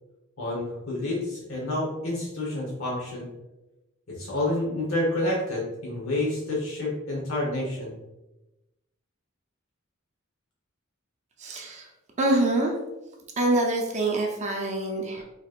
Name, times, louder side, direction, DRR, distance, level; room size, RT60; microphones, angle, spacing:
voice 1, 0.4-3.3 4.1-7.9, left 1 dB, 80° left, -4 dB, 1.1 m, -29 dB
voice 2, 11.4-11.9 12.2-12.7 13.4-15.2, right 2 dB, 35° right, 1 dB, 0.6 m, -25 dB
4.5 x 3.0 x 2.4 m, 0.99 s
head